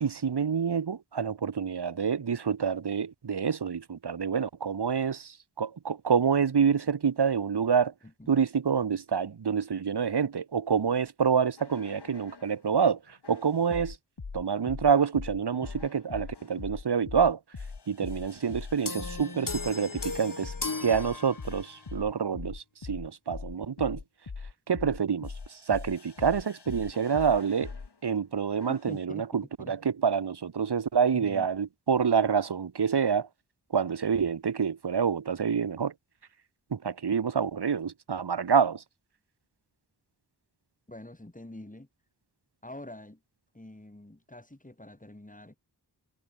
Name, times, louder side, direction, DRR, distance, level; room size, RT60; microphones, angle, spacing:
voice 1, 0.0-7.9 8.3-13.0 13.3-14.0 14.3-17.4 17.9-20.5 20.8-24.0 24.7-25.3 25.7-27.7 28.0-29.4 29.7-33.3 33.7-35.9 36.7-38.8, right 6 dB, 80° right, 1.2 m, -27 dB
sound 1, 11.6-12.6 13.2-27.9 28.6-29.0, left 4 dB, 85° left, 5.3 m, -42 dB
sound 2, 18.9-21.8, left 3 dB, 55° left, 4.8 m, -36 dB
voice 2, 28.9-29.3 29.6-29.7 31.1-31.5 40.9-41.9 42.6-43.2 43.5-45.6, left 1 dB, 20° left, 5.7 m, -45 dB
wide cardioid pair, 75°, 40 cm